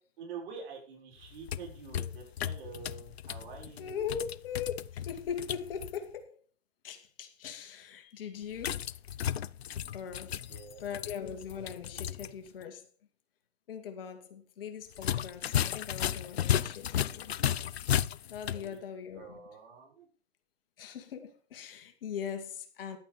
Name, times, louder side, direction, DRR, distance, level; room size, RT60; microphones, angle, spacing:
voice 1, 0.2-4.0 10.5-11.0 18.4-18.8 19.2-20.1, right 6 dB, 55° right, 6.2 m, -47 dB
sound 1, 1.2-6.0 8.6-12.3 12.6-12.7 14.9-18.7, left 10 dB, 80° left, 0.5 m, -34 dB
voice 2, 3.8-6.4 6.8-8.9 9.9-12.9 13.7-17.3 18.3-19.4 20.8-23.0, left 7 dB, 60° left, 2.6 m, -40 dB
11.5 x 8.7 x 5.1 m
figure-of-eight pair, 110°, 31 cm